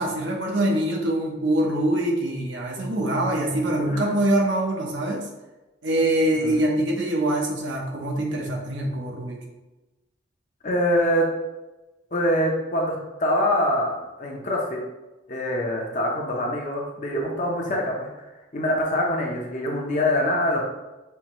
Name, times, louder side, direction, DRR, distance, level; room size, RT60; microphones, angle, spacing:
voice 1, 0.0-5.3 5.8-9.4, right 1 dB, 70° right, -1 dB, 0.9 m, -24 dB
voice 2, 10.6-11.3 12.1-14.8 15.3-18.1 18.5-20.6, left 1 dB, 40° left, -1 dB, 0.7 m, -24 dB
5.7 x 2.8 x 3.0 m, 1.1 s
head